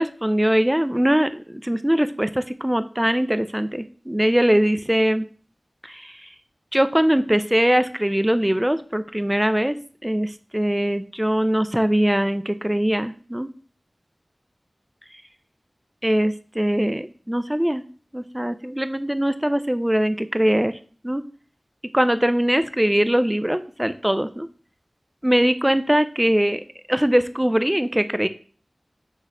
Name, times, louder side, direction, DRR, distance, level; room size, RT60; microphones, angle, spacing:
voice 1, 0.0-5.2 5.9-6.1 6.7-9.8 10.0-13.5 16.0-17.8 18.1-20.8 21.0-21.2 21.9-24.5 25.2-26.6 26.9-28.3, equal, 10° right, 12 dB, 0.4 m, -21 dB
6.1 x 3.2 x 5.3 m, 0.41 s
wide cardioid pair, 55°, 0 cm